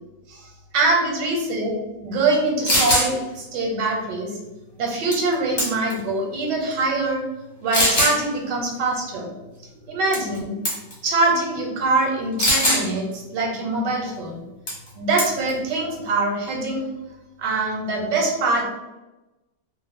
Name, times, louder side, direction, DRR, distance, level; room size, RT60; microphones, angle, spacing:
voice 1, 0.7-1.7 2.0-4.3 4.8-7.2 7.6-9.3 9.9-10.5 11.0-14.4 14.9-16.8 17.4-18.6, right 2 dB, 85° right, -1 dB, 1.3 m, -23 dB
sound 1, 2.3-2.4 2.7-3.1 5.1-5.3 5.6-6.0 6.7-6.8 7.7-8.2 10.1-10.4 10.7-10.9 12.4-12.8 14.7-14.9 15.2-15.5, left 1 dB, 45° left, 1.1 m, -20 dB
2.9 x 2.1 x 3.4 m, 1.0 s
omnidirectional pair, 1.8 m